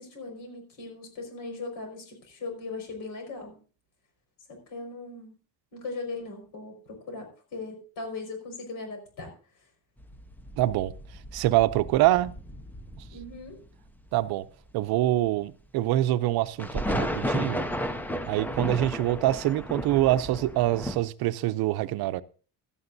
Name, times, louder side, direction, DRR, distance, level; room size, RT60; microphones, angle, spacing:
voice 1, 0.0-3.5 4.5-5.3 5.7-9.3 13.1-13.6, left 3 dB, 60° left, 5.2 m, -39 dB
sound 1, 10.0-14.2 14.7-14.8 15.7-15.8 16.2-16.3 16.6-21.0, equal, 5° left, 0.4 m, -34 dB
voice 2, 10.6-10.9 11.3-12.3 14.1-14.4 14.7-17.6 18.3-22.2, right 15 dB, 70° right, 0.6 m, -25 dB
15.5 x 12.5 x 2.6 m
cardioid pair, 175°, 38 cm